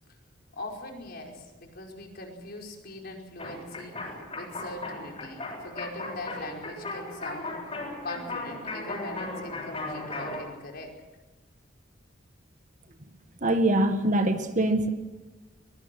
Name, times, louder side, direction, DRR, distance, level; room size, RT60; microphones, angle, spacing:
voice 1, 0.5-7.6 8.0-10.9, left 2 dB, 55° left, 1 dB, 5.1 m, -41 dB
sound 1, 3.4-10.4, left 2 dB, 30° left, 7.6 m, -37 dB
voice 2, 13.4-14.9, right 1 dB, 40° right, 7 dB, 1.8 m, -23 dB
23.5 x 22.5 x 6.2 m, 1.2 s
head